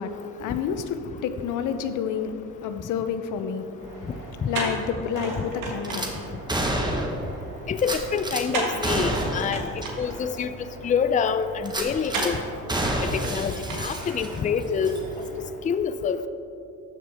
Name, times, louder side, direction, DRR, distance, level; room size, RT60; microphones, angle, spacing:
voice 1, 0.0-6.3 6.6-6.7, left 7 dB, 85° left, 9 dB, 0.7 m, -30 dB
sound 1, 3.8-15.5, right 2 dB, 85° right, 1.7 m, -35 dB
Gunshot gunfire / Glass, 5.8-6.1 6.5-7.3 7.8-8.4 8.8-9.5 9.8-9.9 10.4-10.5 11.6-12.3 12.7-14.5 14.8-15.0, right 1 dB, 15° right, 1.1 m, -28 dB
voice 2, 7.7-9.7 10.0-10.5 10.8-12.4 13.0-15.0 15.6-16.3, left 6 dB, 25° left, 11 dB, 0.4 m, -26 dB
12.5 x 6.6 x 3.5 m, 2.8 s
cardioid pair, 90°, 30 cm